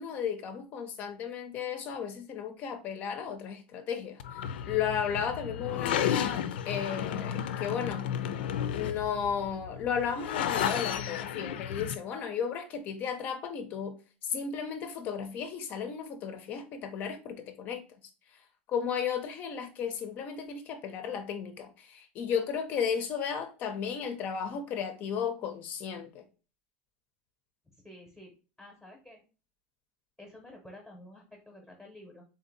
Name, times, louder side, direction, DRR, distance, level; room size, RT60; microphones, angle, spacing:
voice 1, 0.0-8.1 8.7-14.0 14.2-17.8 18.7-26.2, left 7 dB, 35° left, 0.5 m, -34 dB
sound 1, 4.2-11.9, left 9 dB, 90° left, 0.4 m, -33 dB
voice 2, 27.8-29.2 30.2-32.2, left 1 dB, ahead, 0.8 m, -51 dB
3.7 x 2.7 x 3.9 m
supercardioid pair, 160°, 5 cm